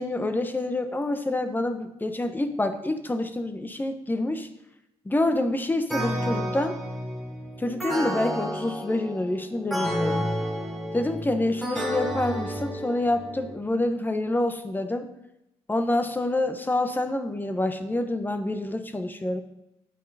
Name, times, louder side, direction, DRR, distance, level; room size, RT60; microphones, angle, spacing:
voice 1, 0.0-4.5 5.0-6.8 7.6-10.3 10.9-15.1 15.7-19.4, left 2 dB, 15° left, 8 dB, 1.1 m, -27 dB
sound 1, 5.9-13.5, equal, ahead, 2.7 m, -31 dB
9.5 x 8.6 x 4.2 m, 0.86 s
cardioid pair, 70°, 11 cm